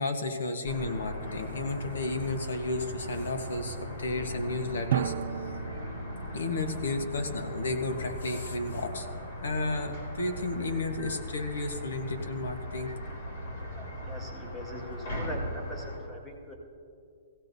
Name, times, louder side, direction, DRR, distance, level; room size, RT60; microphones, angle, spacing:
voice 1, 0.0-5.1 5.4-5.5 6.3-9.1 9.4-12.9, left 2 dB, 85° left, 7 dB, 1.2 m, -32 dB
sound 1, 0.6-16.0, equal, 55° left, 3.3 m, -39 dB
Drum, 4.9-7.2, right 11 dB, 55° right, 0.4 m, -34 dB
voice 2, 14.0-16.5, equal, 10° left, 0 dB, 1.8 m, -41 dB
18.0 x 16.0 x 2.7 m, 2.4 s
hypercardioid pair, 160°, 0 cm